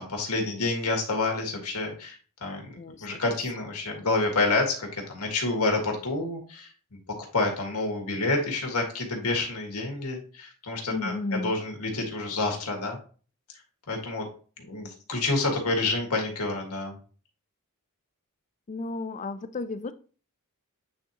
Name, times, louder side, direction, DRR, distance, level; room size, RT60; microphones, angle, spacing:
voice 1, 0.0-2.7 3.0-6.7 7.3-13.0 13.9-14.2 14.7-17.0, left 2 dB, 75° left, 1.9 m, -28 dB
voice 2, 2.8-3.1 10.9-11.5 18.7-19.9, left 3 dB, 35° left, 0.4 m, -33 dB
8.6 x 3.9 x 2.9 m
head